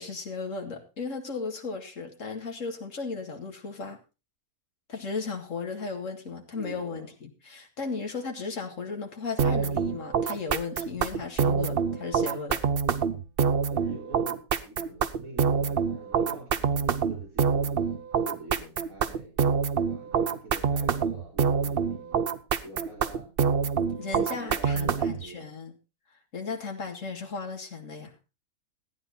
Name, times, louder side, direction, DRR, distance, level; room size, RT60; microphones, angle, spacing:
voice 1, 0.0-4.0 4.9-12.6 23.8-25.7 26.3-28.1, left 4 dB, 65° left, 2 dB, 2.4 m, -35 dB
voice 2, 6.5-7.1 13.7-19.4 19.8-22.2 22.6-23.3 23.7-25.5, right 2 dB, 75° right, 0 dB, 5.2 m, -45 dB
sound 1, 9.4-25.2, right 6 dB, 50° right, 0.8 m, -26 dB
14.5 x 9.6 x 4.1 m, 0.30 s
omnidirectional pair, 1.5 m